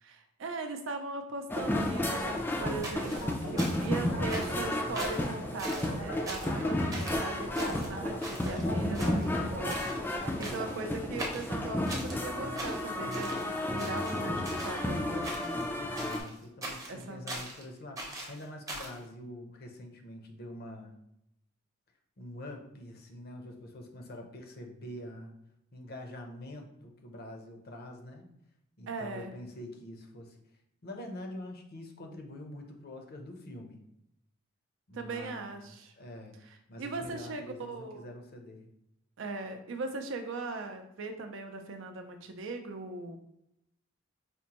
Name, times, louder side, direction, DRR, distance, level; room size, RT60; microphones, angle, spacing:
voice 1, 0.0-15.5 16.9-17.3 28.9-29.3 34.9-35.9 36.8-38.1 39.2-43.2, right 3 dB, 65° right, 6 dB, 0.5 m, -39 dB
sound 1, 1.5-16.2, left 1 dB, 10° left, 0.3 m, -32 dB
sound 2, 1.9-5.5 5.7-6.8 7.1-10.5, equal, 70° left, 1.1 m, -41 dB
sound 3, 2.8-4.0 4.3-4.7 5.0-5.3 5.6-6.0 6.3-6.6 6.9-7.2 7.6-8.6 8.9-9.4 9.7-10.0 10.4-10.8 11.2-12.2 12.6-13.5 13.8-14.8 15.2-15.7 16.0-17.6 18.0-19.0, right 1 dB, 15° right, 0.7 m, -41 dB
voice 2, 10.3-11.0 15.7-21.0 22.2-25.3 25.7-28.3 28.8-30.4 30.8-33.8 34.9-38.7, left 1 dB, 50° left, 3 dB, 0.6 m, -45 dB
5.1 x 2.1 x 2.9 m, 0.80 s
head